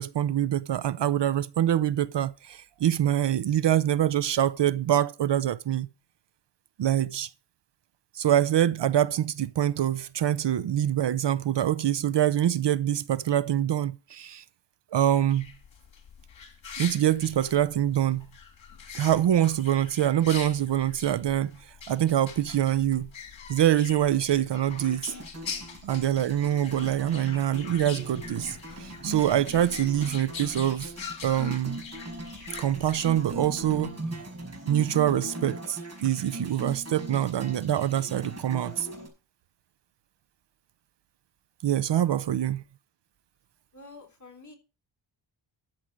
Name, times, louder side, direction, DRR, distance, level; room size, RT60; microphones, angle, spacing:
voice 1, 0.0-5.9 6.8-7.3 8.1-14.4 14.9-15.5 16.8-18.3 18.9-23.1 23.5-25.1 25.8-30.9 31.2-31.8 32.6-34.0 34.7-38.9 41.6-42.6, right 11 dB, 60° right, 0.7 m, -25 dB
sound 1, 15.1-33.9, left 6 dB, 70° left, 2.7 m, -43 dB
sound 2, 24.6-39.1, right 1 dB, 35° right, 5.6 m, -40 dB
voice 2, 41.9-42.3 43.7-44.6, left 2 dB, 35° left, 3.3 m, -49 dB
13.0 x 7.5 x 5.1 m
wide cardioid pair, 115°, 47 cm